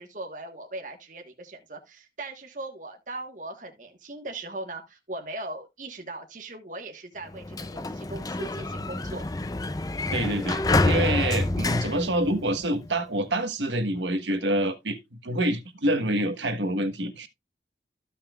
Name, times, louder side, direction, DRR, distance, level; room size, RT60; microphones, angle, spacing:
voice 1, 0.0-9.2, right 2 dB, 45° right, 1.5 m, -39 dB
Sliding door, 7.3-12.9, left 2 dB, 20° left, 0.5 m, -28 dB
voice 2, 10.1-17.3, right 1 dB, 90° right, 1.4 m, -27 dB
14.5 x 5.7 x 2.4 m
head